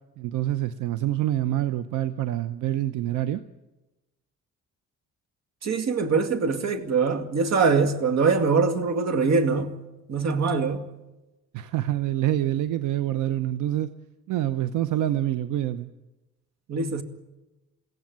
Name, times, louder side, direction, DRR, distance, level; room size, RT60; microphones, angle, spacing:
voice 1, 0.2-3.4 11.5-13.9 14.3-15.9, right 13 dB, 85° right, 0.8 m, -26 dB
voice 2, 5.6-9.8 10.1-10.8 16.7-17.0, right 4 dB, 60° right, 2.2 m, -23 dB
22.5 x 16.5 x 9.3 m
cardioid pair, 90°, 30 cm